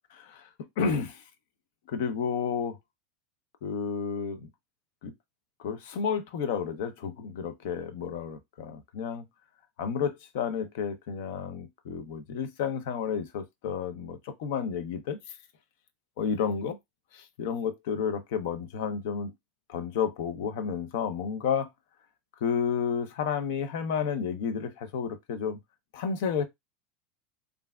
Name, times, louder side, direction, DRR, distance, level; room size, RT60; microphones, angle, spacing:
voice 1, 0.1-0.4 0.8-1.2 1.9-2.8 3.6-4.5 5.0-5.1 5.6-9.2 9.8-15.2 16.2-16.8 17.1-19.3 19.7-21.7 22.4-25.6 25.9-26.4, left 6 dB, 70° left, 0.6 m, -31 dB
3.3 x 2.5 x 2.2 m
hypercardioid pair, 95°, 0 cm